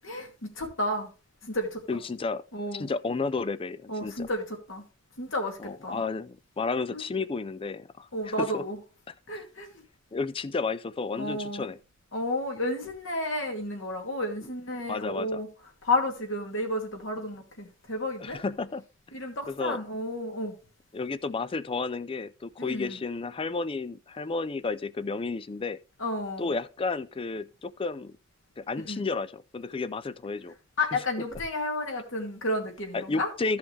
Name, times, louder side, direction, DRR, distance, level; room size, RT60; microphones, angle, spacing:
voice 1, 0.0-1.1 1.4-2.0 2.5-2.9 3.9-4.8 5.2-6.0 6.9-7.0 8.1-8.8 9.3-9.8 11.1-11.6 12.1-15.5 15.8-18.4 19.1-20.5 22.6-23.0 26.0-26.5 28.8-29.0 30.8-33.3, left 1 dB, 75° left, 2.3 m, -32 dB
voice 2, 1.9-2.4 2.7-4.3 5.6-8.6 9.1-9.2 10.1-11.8 14.9-15.4 18.2-18.8 19.5-19.8 20.9-25.8 26.4-28.2 28.6-30.5 30.9-31.0 32.9-33.6, left 4 dB, 30° left, 0.4 m, -32 dB
14.5 x 5.6 x 3.2 m
head